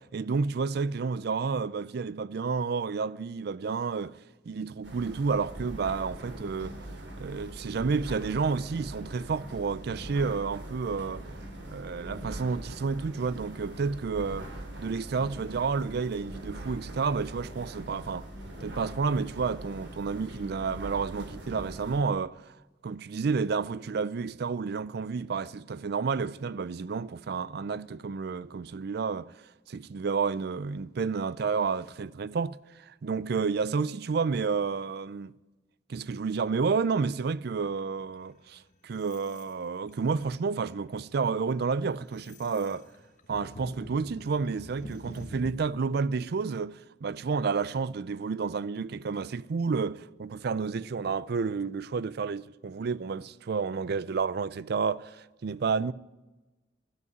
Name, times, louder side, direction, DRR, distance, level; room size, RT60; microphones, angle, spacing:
voice 1, 0.1-4.1 4.5-6.8 7.2-11.2 11.7-14.5 14.8-18.3 18.6-22.4 22.8-29.3 29.7-35.3 35.9-42.9 43.3-55.9, right 5 dB, 60° right, 0.4 m, -30 dB
sound 1, 4.8-22.0, right 1 dB, 85° right, 2.8 m, -42 dB
sound 2, 38.0-39.5 39.9-40.4 40.9-41.1 41.5-45.5, left 1 dB, 45° left, 1.2 m, -47 dB
12.5 x 8.0 x 9.5 m
head